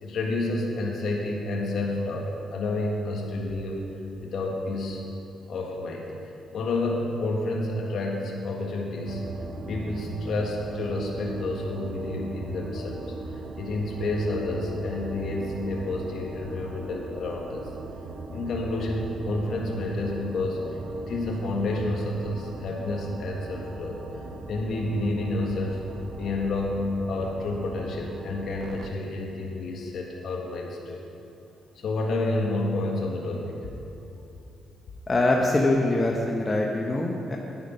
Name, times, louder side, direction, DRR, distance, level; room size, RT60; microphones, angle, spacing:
voice 1, 0.0-3.9 4.2-5.0 5.5-6.1 6.5-9.2 9.7-13.0 13.6-17.7 18.3-20.6 21.1-24.0 24.5-25.8 26.2-31.0 31.7-33.7, left 2 dB, 65° left, -1 dB, 1.5 m, -29 dB
sound 1, 9.1-28.9, right 3 dB, 50° right, 0.8 m, -39 dB
voice 2, 35.1-37.4, left 2 dB, 25° left, -1 dB, 1.0 m, -23 dB
9.7 x 9.6 x 5.7 m, 2.8 s
cardioid pair, 90°, 0 cm